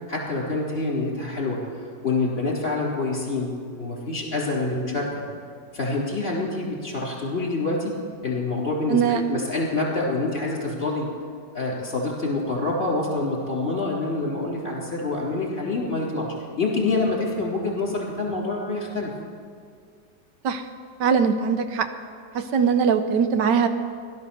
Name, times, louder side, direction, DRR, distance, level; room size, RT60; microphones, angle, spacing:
voice 1, 0.1-1.7 2.0-5.1 5.7-8.0 8.2-11.1 11.5-19.1, left 3 dB, 35° left, -3 dB, 3.8 m, -26 dB
voice 2, 8.9-9.2 20.4-20.7 21.0-21.9 22.3-23.7, right 6 dB, 80° right, 8 dB, 1.5 m, -21 dB
16.5 x 12.0 x 7.0 m, 2.1 s
omnidirectional pair, 1.9 m